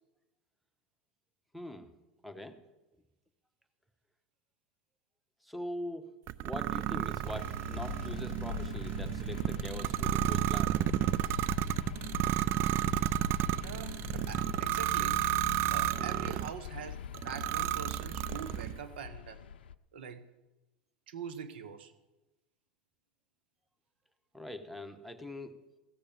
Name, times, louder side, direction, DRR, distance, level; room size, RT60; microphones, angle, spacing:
voice 1, 1.5-1.9 2.2-2.6 5.4-6.1 6.4-10.9 24.3-25.6, left 1 dB, ahead, 8 dB, 1.1 m, -43 dB
sound 1, 6.3-16.6 17.1-18.8, right 14 dB, 45° right, 0.4 m, -32 dB
sound 2, 7.2-19.7, left 8 dB, 85° left, 0.5 m, -43 dB
voice 2, 13.6-15.4 15.7-19.4 19.9-20.3 21.1-21.9, right 7 dB, 75° right, 12 dB, 1.0 m, -44 dB
15.5 x 6.6 x 7.4 m, 1.0 s
hypercardioid pair, 95°, 5 cm